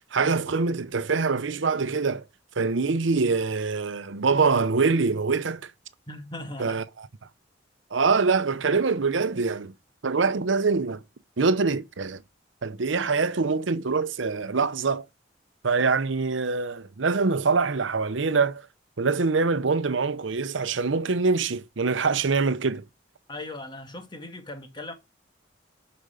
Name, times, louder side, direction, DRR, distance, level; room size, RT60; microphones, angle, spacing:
voice 1, 0.1-2.2 2.6-5.7 6.6-7.1 7.9-9.7 10.0-11.0 11.4-12.2 12.6-15.0 15.6-18.6 19.0-22.8, right 4 dB, 80° right, 0.7 m, -24 dB
voice 2, 6.1-6.8 23.3-24.9, left 2 dB, 25° left, 2.0 m, -38 dB
12.0 x 5.2 x 5.0 m
head